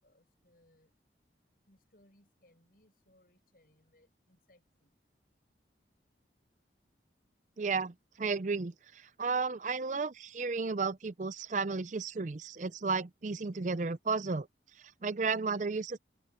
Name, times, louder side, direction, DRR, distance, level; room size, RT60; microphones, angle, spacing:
voice 1, 0.0-0.9 1.7-4.9, left 1 dB, 50° left, 7.3 m, -67 dB
voice 2, 7.6-14.5 14.8-16.0, right 4 dB, 40° right, 0.5 m, -33 dB
head